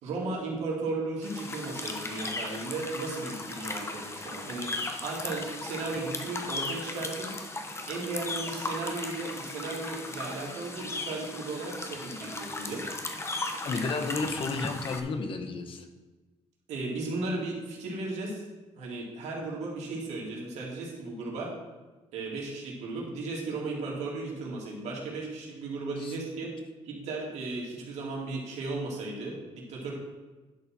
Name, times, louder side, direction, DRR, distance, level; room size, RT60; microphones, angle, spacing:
voice 1, 0.0-4.7 5.0-7.3 7.9-12.9 16.7-18.4 18.8-21.5 22.1-26.5 26.9-29.9, right 3 dB, 85° right, -2 dB, 2.5 m, -35 dB
sound 1, 1.2-15.0, left 2 dB, 25° left, 1.1 m, -37 dB
voice 2, 13.6-15.9 26.0-26.1, left 3 dB, 50° left, 6 dB, 1.1 m, -32 dB
11.0 x 4.3 x 6.0 m, 1.2 s
cardioid pair, 110°, 11 cm